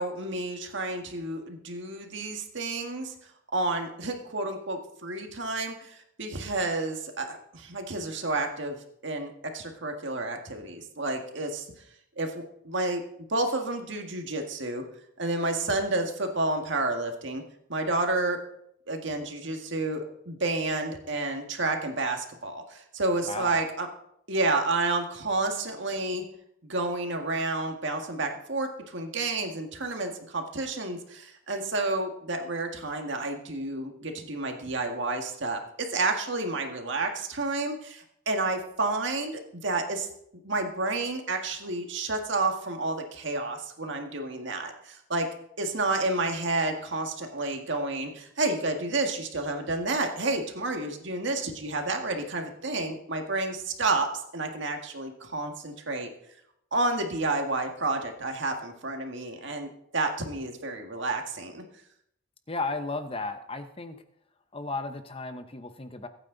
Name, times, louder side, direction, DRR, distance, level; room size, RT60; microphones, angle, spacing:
voice 1, 0.0-3.1 3.5-8.8 9.0-11.7 12.2-13.0 13.3-14.8 15.2-17.4 17.7-18.4 18.9-23.9 24.3-26.2 26.6-40.1 40.4-45.3 45.6-54.1 54.3-56.1 56.7-61.6, right 2 dB, 60° right, 4 dB, 1.9 m, -30 dB
voice 2, 23.3-23.6 62.5-64.0 64.5-66.1, left 3 dB, 25° left, 9 dB, 0.9 m, -34 dB
23.0 x 9.1 x 4.0 m, 0.74 s
head